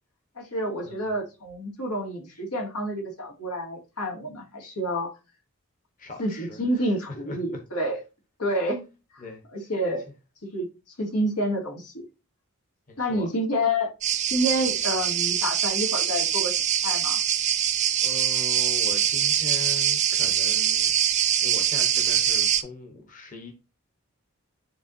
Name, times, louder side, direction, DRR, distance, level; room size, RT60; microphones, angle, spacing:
voice 1, 0.4-5.1 6.2-8.0 8.4-8.9 9.1-9.2 9.5-10.0 10.5-10.7 11.0-12.0 13.0-13.9 14.3-16.5 16.8-17.2, equal, 90° left, 2.3 m, -28 dB
voice 2, 6.0-6.9 7.2-7.4 9.2-9.4 12.9-13.3 18.0-20.9 21.4-23.5, left 3 dB, 35° left, 1.1 m, -40 dB
sound 1, 14.0-22.6, right 10 dB, 30° right, 0.4 m, -24 dB
10.0 x 3.5 x 2.7 m
head